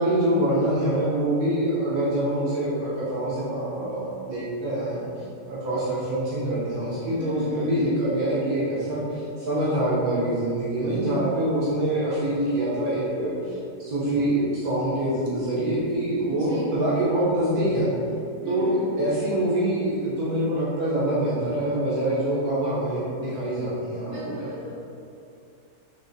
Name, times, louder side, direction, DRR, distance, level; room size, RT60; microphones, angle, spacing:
voice 1, 0.0-17.9 18.5-24.1, right 1 dB, 75° right, -9 dB, 1.3 m, -25 dB
voice 2, 7.2-7.8 16.2-16.7 18.4-18.9 24.0-24.7, left 1 dB, 60° right, -7 dB, 1.3 m, -36 dB
4.1 x 3.1 x 2.6 m, 2.6 s
omnidirectional pair, 1.6 m